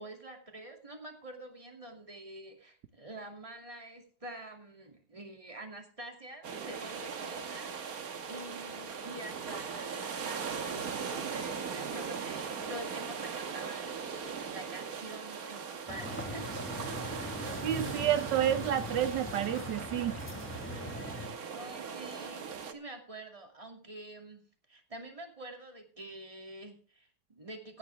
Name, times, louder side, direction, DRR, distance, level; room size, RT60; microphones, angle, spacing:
voice 1, 0.0-16.6 21.5-27.8, right 1 dB, 20° right, 2.5 m, -47 dB
sound 1, 6.4-22.7, right 6 dB, 55° right, 1.6 m, -39 dB
sound 2, 15.9-21.3, left 2 dB, 5° left, 1.4 m, -41 dB
voice 2, 17.6-20.2, right 11 dB, 80° right, 1.3 m, -30 dB
16.0 x 10.0 x 3.4 m
omnidirectional pair, 1.9 m